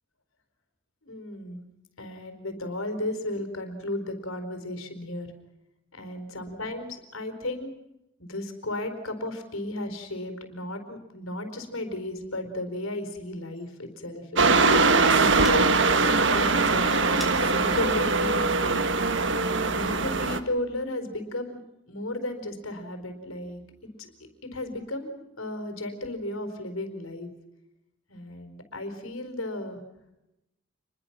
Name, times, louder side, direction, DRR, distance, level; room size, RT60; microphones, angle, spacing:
voice 1, 1.0-1.6 2.0-5.3 5.9-7.7 8.2-18.8 19.6-21.6 21.9-23.6 24.0-27.3 28.1-29.8, left 1 dB, 75° left, 7 dB, 4.6 m, -34 dB
sound 1, 12.8-13.0 13.6-13.9 14.6-14.7 15.0-16.0 16.6-19.0 19.5-19.9, left 1 dB, ahead, 4.1 m, -44 dB
sound 2, 14.4-20.4, right 3 dB, 60° right, 1.5 m, -22 dB
28.5 x 22.0 x 6.1 m, 0.91 s
head